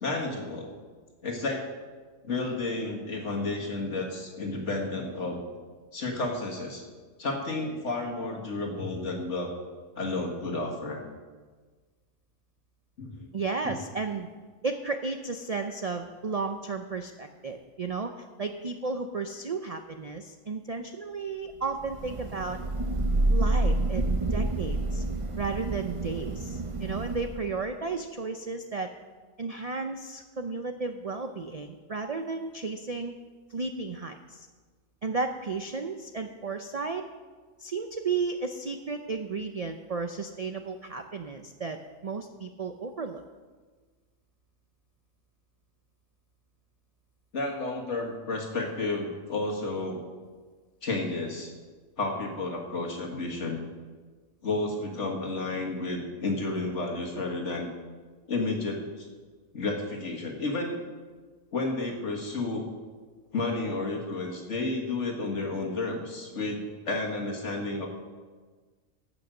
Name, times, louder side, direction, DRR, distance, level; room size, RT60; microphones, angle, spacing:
voice 1, 0.0-0.7 1.2-1.7 2.2-5.4 5.9-6.8 7.2-9.5 10.0-11.1 13.0-13.3 13.6-13.7 47.3-50.0 50.8-51.5 52.0-53.6 54.4-57.7 58.3-59.1 59.5-60.8 61.5-62.7 63.3-67.9, left 2 dB, 60° left, 0 dB, 2.2 m, -31 dB
voice 2, 13.3-14.3 14.6-18.1 18.4-22.6 23.3-25.0 25.4-28.9 29.4-33.1 33.5-34.5 35.0-37.0 37.6-43.2, right 4 dB, 50° right, 6 dB, 0.4 m, -33 dB
Thunder / Rain, 21.8-27.6, right 2 dB, 30° right, 0.8 m, -28 dB
15.0 x 6.3 x 6.5 m, 1.4 s
omnidirectional pair, 1.4 m